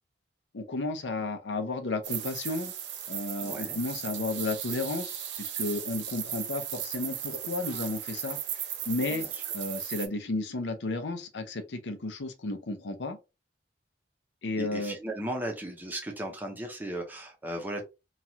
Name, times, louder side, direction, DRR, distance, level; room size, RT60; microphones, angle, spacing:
voice 1, 0.5-2.7 3.1-8.4 8.9-9.3 9.5-13.2 14.4-15.0, left 2 dB, 80° left, 0.6 m, -33 dB
sound 1, 2.0-10.1, right 10 dB, 90° right, 0.6 m, -36 dB
voice 2, 3.4-3.8 9.1-9.4 14.6-17.8, right 1 dB, 10° right, 0.7 m, -36 dB
3.0 x 2.3 x 2.7 m
head